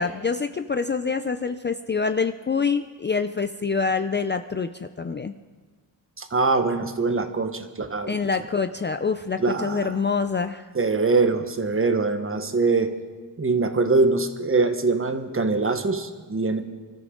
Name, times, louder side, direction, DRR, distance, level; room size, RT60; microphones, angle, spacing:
voice 1, 0.0-5.3 8.1-10.6, left 5 dB, 25° left, 8 dB, 0.5 m, -26 dB
voice 2, 6.2-8.1 9.4-9.9 10.7-12.9 13.4-16.6, right 3 dB, 30° right, 8 dB, 1.3 m, -23 dB
24.5 x 13.5 x 3.9 m, 1.5 s
cardioid pair, 95°, 45 cm